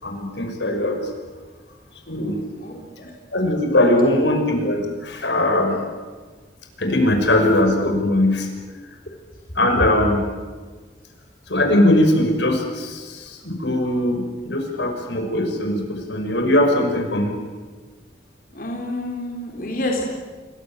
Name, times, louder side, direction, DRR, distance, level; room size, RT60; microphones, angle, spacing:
voice 1, 0.0-1.0 2.1-2.4 3.3-5.8 6.8-8.5 9.6-10.2 11.5-17.4, left 1 dB, 90° left, 4 dB, 6.2 m, -20 dB
voice 2, 2.6-3.1 3.9-4.1 18.5-20.0, left 1 dB, 50° left, 0 dB, 4.0 m, -29 dB
28.5 x 24.0 x 7.7 m, 1.4 s
head